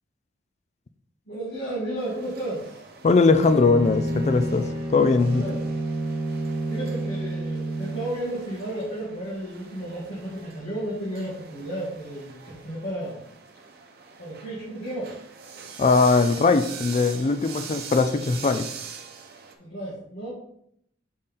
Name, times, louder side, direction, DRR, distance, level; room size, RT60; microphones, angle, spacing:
voice 1, 1.3-2.8 5.3-5.6 6.7-13.2 14.2-15.2 19.6-20.3, right 1 dB, 55° left, -9 dB, 2.5 m, -33 dB
sound 1, 2.0-19.6, right 6 dB, 55° right, 0.8 m, -44 dB
voice 2, 3.0-5.4 15.8-18.7, left 4 dB, 35° left, 10 dB, 0.4 m, -20 dB
Bowed string instrument, 3.4-8.2, right 1 dB, 35° right, 1.4 m, -29 dB
6.5 x 4.3 x 3.7 m, 0.70 s
head